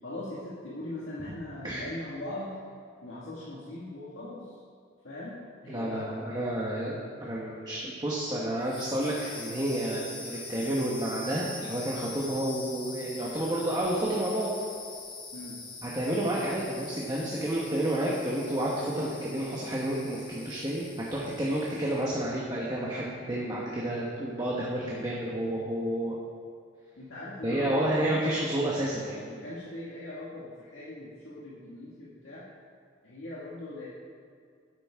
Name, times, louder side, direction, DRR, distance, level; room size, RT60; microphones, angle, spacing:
voice 1, 0.0-2.5 3.0-4.6 5.0-6.3 15.3-15.6 24.9-25.0 27.0-28.7 29.3-32.4 33.0-33.9, left 1 dB, 75° left, -8 dB, 1.9 m, -40 dB
voice 2, 5.7-14.5 15.8-26.2 27.4-29.2, right 1 dB, 20° right, -5 dB, 1.3 m, -30 dB
sound 1, 8.6-22.1, left 3 dB, 25° left, 1.3 m, -44 dB
12.0 x 9.2 x 3.7 m, 2.2 s
head